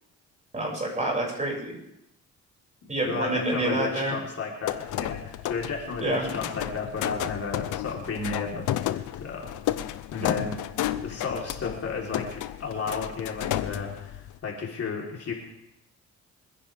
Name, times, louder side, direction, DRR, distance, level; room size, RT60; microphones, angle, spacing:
voice 1, 0.5-1.8 2.9-4.2 6.0-6.2 10.2-10.3, right 1 dB, 25° right, -2 dB, 6.3 m, -27 dB
voice 2, 2.8-9.5 10.1-10.6 11.0-15.3, left 4 dB, 50° left, -2 dB, 3.9 m, -33 dB
sound 1, 4.6-14.4, left 13 dB, 85° left, 0.8 m, -32 dB
26.0 x 10.0 x 3.6 m, 0.81 s
cardioid pair, 90°, 30 cm